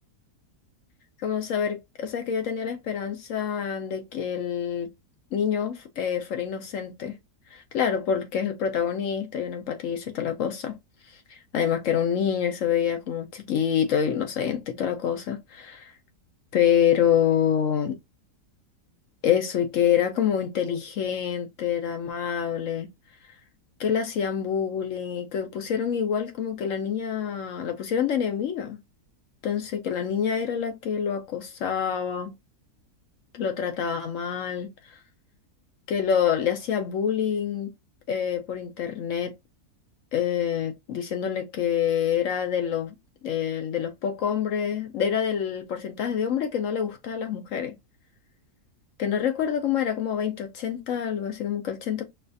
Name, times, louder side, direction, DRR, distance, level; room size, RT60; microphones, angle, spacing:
voice 1, 1.2-4.9 5.3-7.2 7.5-10.8 11.3-15.9 16.5-17.9 19.2-22.9 23.8-28.8 29.4-32.3 33.3-34.7 35.9-37.7 38.1-39.4 40.1-42.9 43.2-47.7 49.0-52.0, left 8 dB, 65° left, 0.8 m, -26 dB
5.5 x 2.4 x 2.5 m
omnidirectional pair, 1.7 m